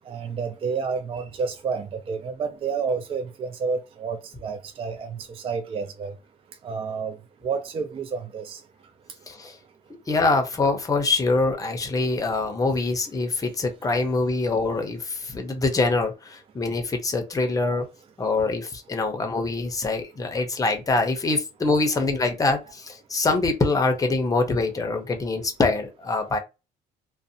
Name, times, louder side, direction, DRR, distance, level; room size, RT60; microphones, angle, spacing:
voice 1, 0.1-6.1 6.6-7.2 7.4-8.6, right 5 dB, 35° right, 0.3 m, -30 dB
voice 2, 10.1-17.9 18.2-26.4, left 3 dB, 20° left, 0.6 m, -24 dB
2.5 x 2.0 x 2.6 m
cardioid pair, 110°, 17 cm